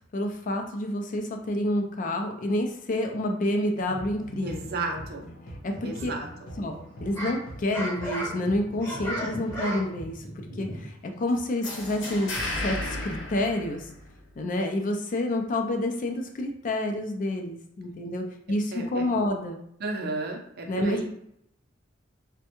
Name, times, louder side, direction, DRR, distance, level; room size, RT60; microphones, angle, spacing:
voice 1, 0.1-5.0 5.6-6.1 6.6-12.3 12.6-12.8 13.0-13.9 14.4-19.6 20.7-21.1, left 1 dB, 45° left, 4 dB, 0.4 m, -29 dB
sound 1, 3.8-10.1, equal, 90° left, 1.0 m, -43 dB
voice 2, 4.4-5.2 5.8-6.3 18.7-19.0 19.8-21.1, right 3 dB, 55° right, 2 dB, 0.6 m, -33 dB
sound 2, 5.7-6.4 6.9-11.1, equal, 15° left, 0.8 m, -35 dB
sound 3, 11.6-14.3, left 2 dB, 65° left, 0.8 m, -34 dB
3.4 x 2.2 x 2.9 m, 0.71 s
head